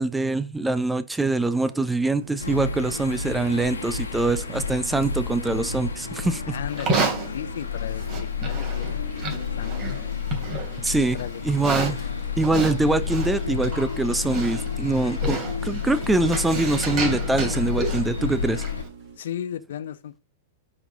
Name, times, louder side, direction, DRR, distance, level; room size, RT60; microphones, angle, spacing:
voice 1, 0.0-6.5 10.8-11.2 11.4-12.0 12.4-18.6, right 2 dB, 5° right, 0.8 m, -24 dB
sound 1, 1.4-19.2, right 6 dB, 60° right, 4.4 m, -48 dB
sound 2, 2.4-18.8, left 6 dB, 80° left, 1.8 m, -30 dB
voice 2, 6.5-7.1 7.3-10.0 11.1-11.4 19.2-20.2, left 10 dB, 60° left, 0.8 m, -36 dB
Livestock farm animals working animals, 6.7-18.9, right 3 dB, 35° right, 3.3 m, -32 dB
9.8 x 4.8 x 3.8 m
figure-of-eight pair, 100°, 0 cm